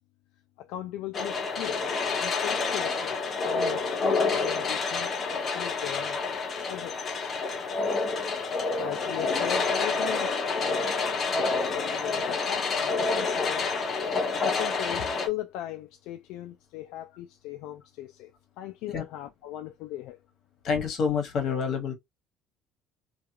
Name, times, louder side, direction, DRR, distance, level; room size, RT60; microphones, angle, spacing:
voice 1, 0.6-6.2 6.7-7.4 8.1-8.2 8.8-10.9 11.3-13.7 14.4-18.3 18.6-20.2, left 14 dB, 80° left, 0.3 m, -38 dB
sound 1, 1.1-15.3, left 4 dB, 40° left, 0.6 m, -28 dB
voice 2, 20.6-21.9, left 6 dB, 55° left, 1.1 m, -27 dB
2.4 x 2.2 x 2.8 m
cardioid pair, 115°, 0 cm